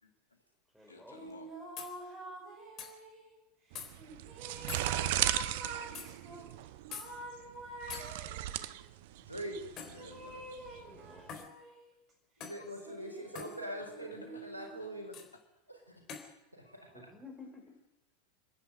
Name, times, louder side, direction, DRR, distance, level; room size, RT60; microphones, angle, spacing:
voice 1, 0.0-0.4 0.9-1.5 9.8-10.5 13.8-14.9, left 2 dB, 80° left, 4 dB, 3.0 m, -54 dB
voice 2, 0.7-1.2 10.9-11.3 16.9-17.6, left 3 dB, 5° right, 3 dB, 5.7 m, -53 dB
sound 1, 1.1-3.3 4.0-6.4 6.9-8.8 10.0-11.9 12.7-15.0, right 1 dB, 30° right, 7.0 m, -47 dB
sound 2, 1.8-1.9 2.8-2.9 3.7-3.9 4.7-4.9 5.9-6.1 6.9-7.1 7.9-8.1 9.8-10.0 11.3-11.5 12.4-12.6 13.3-13.5 15.1-15.3 16.1-16.3, left 7 dB, 35° left, 3.9 m, -44 dB
sound 3, 3.7-11.4, right 14 dB, 55° right, 0.8 m, -37 dB
voice 3, 9.1-9.6 12.4-15.2 15.7-15.9 16.5-16.9, right 1 dB, 90° right, 3 dB, 4.7 m, -43 dB
26.0 x 11.0 x 9.2 m, 0.95 s
figure-of-eight pair, 85°, 0 cm